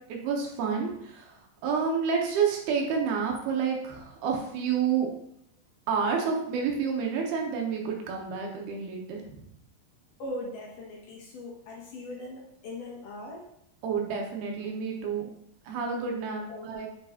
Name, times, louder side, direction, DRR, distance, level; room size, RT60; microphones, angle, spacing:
voice 1, 0.1-1.4 1.6-5.1 5.9-9.4 13.8-15.3 15.6-16.9, right 6 dB, 80° right, 0 dB, 3.1 m, -29 dB
voice 2, 10.2-13.5 16.5-16.9, left 1 dB, 65° left, -3 dB, 2.7 m, -40 dB
9.6 x 5.7 x 2.5 m, 0.74 s
omnidirectional pair, 4.4 m